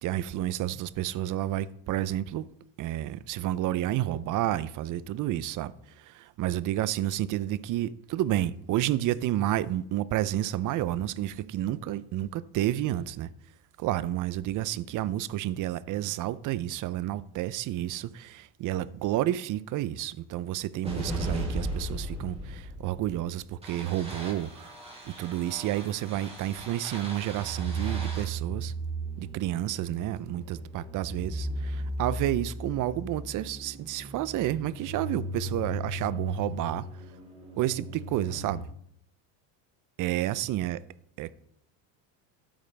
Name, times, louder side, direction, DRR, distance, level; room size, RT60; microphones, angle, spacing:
voice 1, 0.0-2.4 2.8-13.3 13.8-24.7 25.0-28.7 29.2-36.9 37.6-38.6 40.0-40.8 41.2-41.3, right 13 dB, 40° right, 0.6 m, -30 dB
sound 1, 20.8-38.6, right 2 dB, 10° right, 2.9 m, -36 dB
12.5 x 9.0 x 3.4 m
supercardioid pair, 115°, 50 cm